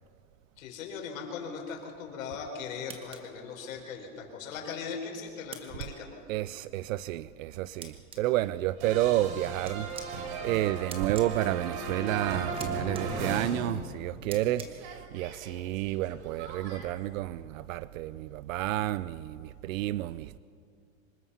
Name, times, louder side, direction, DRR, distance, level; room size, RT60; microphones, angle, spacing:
voice 1, 0.6-6.1, left 5 dB, 75° left, 5.1 m, -39 dB
sound 1, 2.9-3.2 5.5-5.9 7.8-8.2 9.7-10.1 10.9-11.3 12.5-12.7 12.9-13.0 14.3-14.7, right 5 dB, 15° right, 1.3 m, -42 dB
voice 2, 6.3-9.9 10.4-20.4, right 15 dB, 75° right, 0.6 m, -30 dB
sound 2, 8.8-14.3 14.5-16.9, right 4 dB, 55° right, 3.8 m, -37 dB
25.5 x 20.5 x 5.7 m
supercardioid pair, 175°, 40 cm